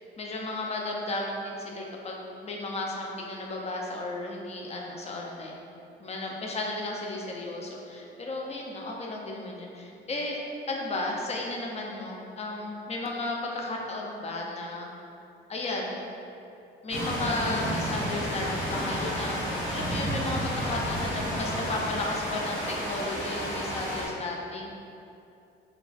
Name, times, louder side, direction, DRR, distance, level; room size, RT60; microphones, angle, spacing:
voice 1, 0.2-5.6 6.0-14.9 15.5-16.0 16.8-22.6 22.8-24.7, left 2 dB, 30° left, -1 dB, 0.5 m, -34 dB
sound 1, 16.9-24.1, equal, 85° left, 1.0 m, -31 dB
2.3 x 2.2 x 3.9 m, 2.7 s
cardioid pair, 90°, 20 cm